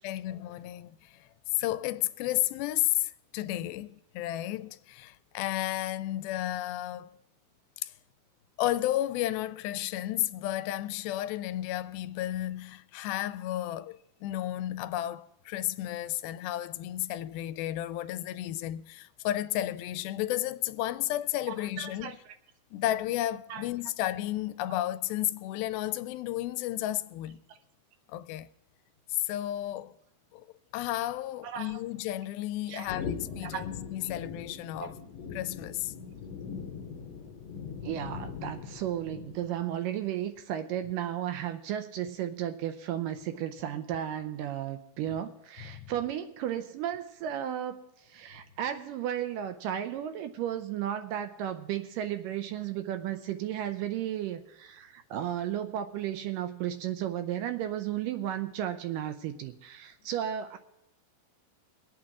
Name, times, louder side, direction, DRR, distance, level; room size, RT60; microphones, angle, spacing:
voice 1, 0.0-1.3 1.5-7.1 7.8-7.9 8.6-22.2 22.7-27.4 28.1-28.5 29.1-29.9 30.3-30.5 30.7-35.0 35.3-35.9 45.1-45.2 45.6-45.9, left 14 dB, 85° left, 2.4 m, -32 dB
voice 2, 21.8-22.1 23.5-23.6 31.4-31.7 32.7-32.9 33.4-33.7 34.8-34.9 37.8-47.8 48.1-60.6, right 11 dB, 80° right, 2.1 m, -34 dB
sound 1, 32.8-39.6, left 6 dB, 55° left, 2.0 m, -40 dB
22.5 x 8.7 x 3.6 m
omnidirectional pair, 4.2 m